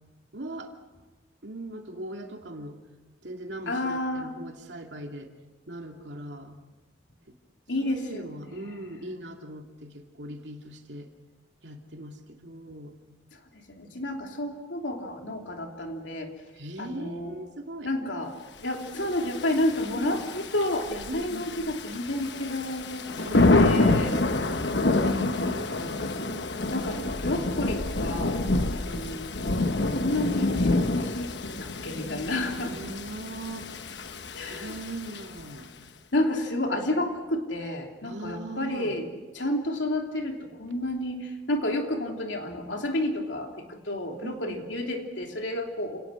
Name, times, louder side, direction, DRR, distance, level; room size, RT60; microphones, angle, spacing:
voice 1, 0.3-1.0 1.4-2.8 3.2-5.3 5.7-6.6 7.3-7.4 7.8-11.1 11.6-12.9 16.6-18.1 19.9-20.2 21.1-21.5 23.1-24.0 24.7-27.1 32.5-33.7 34.3-35.7 38.0-38.9 44.2-44.7, right 1 dB, 75° right, 2 dB, 2.6 m, -40 dB
voice 2, 3.7-4.4 7.7-9.1 13.3-16.3 16.8-17.3 17.8-24.5 26.7-28.4 28.7-29.3 29.9-32.8 34.3-34.8 36.1-39.1 39.3-46.0, left 1 dB, 90° left, 2 dB, 3.1 m, -31 dB
Thunder / Rain, 19.0-35.6, left 2 dB, 70° left, 1.2 m, -27 dB
29.0 x 18.5 x 6.4 m, 1.2 s
head